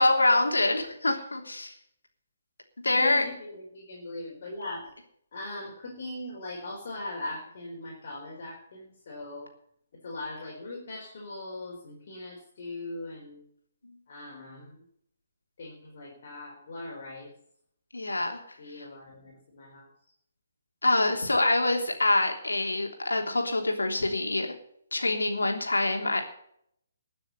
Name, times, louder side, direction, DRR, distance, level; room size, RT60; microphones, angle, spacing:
voice 1, 0.0-1.7 2.8-3.3 17.9-18.4 18.8-18.9 20.8-24.5 24.9-26.2, left 2 dB, 70° left, 4 dB, 3.3 m, -25 dB
voice 2, 2.9-4.9 5.3-9.5 10.0-13.4 14.1-14.8 15.6-17.3 18.6-19.9, left 2 dB, 45° left, -2 dB, 4.4 m, -40 dB
20.5 x 7.0 x 6.9 m, 0.68 s
figure-of-eight pair, 135°, 0 cm